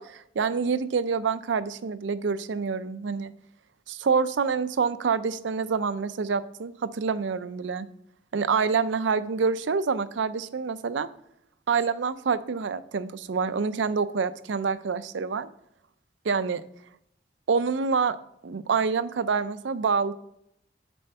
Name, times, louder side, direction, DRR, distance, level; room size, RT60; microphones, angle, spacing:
voice 1, 0.0-3.3 3.9-7.9 8.3-11.1 11.7-15.5 16.2-16.6 17.5-18.2 18.4-20.1, right 5 dB, 85° right, 14 dB, 0.5 m, -27 dB
7.6 x 4.4 x 5.4 m, 0.73 s
head